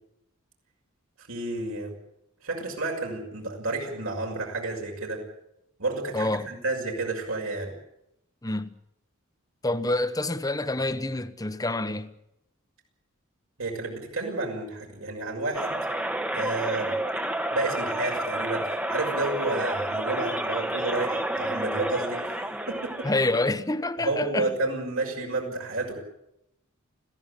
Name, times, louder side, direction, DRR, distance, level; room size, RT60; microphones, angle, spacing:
voice 1, 1.2-1.9 2.4-5.2 5.8-7.7 13.6-15.8 16.3-16.9 17.5-22.3 22.7-23.1 24.0-26.0, right 2 dB, 75° right, 6.3 m, -31 dB
voice 2, 6.1-6.5 8.4-8.7 9.6-12.1 23.0-24.5, left 2 dB, 15° left, 1.1 m, -27 dB
sound 1, 15.5-23.5, right 1 dB, 5° right, 1.2 m, -30 dB
21.5 x 16.0 x 9.9 m
head